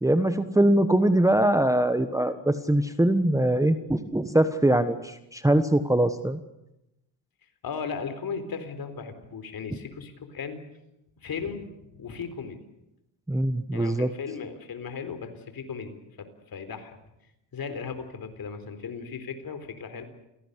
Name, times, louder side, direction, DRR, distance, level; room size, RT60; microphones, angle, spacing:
voice 1, 0.0-6.4 13.3-14.1, right 1 dB, 5° right, 9 dB, 1.2 m, -22 dB
voice 2, 7.6-10.6 11.2-12.6 13.7-17.0 17.5-20.0, left 5 dB, 45° left, 9 dB, 4.1 m, -36 dB
28.5 x 18.0 x 8.2 m, 0.87 s
cardioid pair, 110°, 47 cm